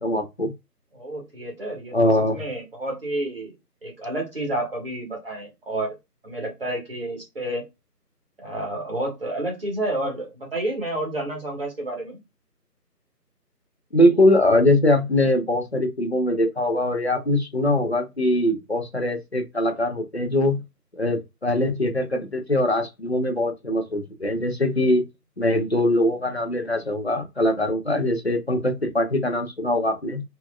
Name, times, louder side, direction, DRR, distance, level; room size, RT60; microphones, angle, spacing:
voice 1, 0.0-0.5 1.9-2.4 13.9-20.6 21.0-25.0 25.4-30.2, left 1 dB, 40° left, 0.7 m, -22 dB
voice 2, 0.9-3.5 3.8-6.0 6.2-7.6 8.4-12.2, right 1 dB, 35° right, 1.5 m, -30 dB
4.1 x 3.0 x 2.3 m
figure-of-eight pair, 170°, 49 cm